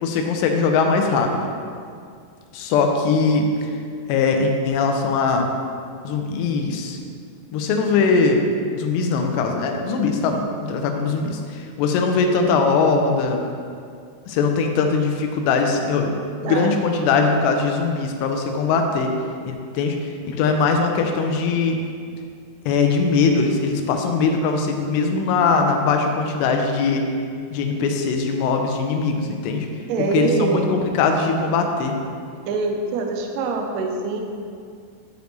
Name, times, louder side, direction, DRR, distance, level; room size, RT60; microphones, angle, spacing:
voice 1, 0.0-1.5 2.5-3.7 4.1-5.5 6.0-7.0 7.5-8.4 8.8-13.4 14.3-16.2 16.4-19.1 19.5-21.8 22.7-27.0 27.5-29.7 30.0-32.0, left 4 dB, 90° left, 3 dB, 2.8 m, -21 dB
voice 2, 29.9-30.7 32.5-34.2, right 4 dB, 90° right, 3 dB, 1.9 m, -24 dB
10.5 x 5.1 x 3.1 m, 2.3 s
omnidirectional pair, 4.8 m